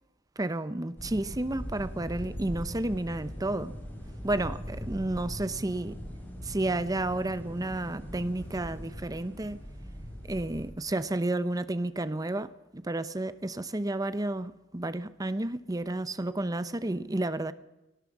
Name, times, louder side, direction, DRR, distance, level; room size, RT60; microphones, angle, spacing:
voice 1, 0.4-3.7 4.2-6.0 6.4-9.6 10.2-17.5, right 2 dB, 20° right, 0.7 m, -31 dB
sound 1, 1.0-10.7, equal, 10° left, 6.2 m, -41 dB
21.5 x 18.0 x 7.3 m
head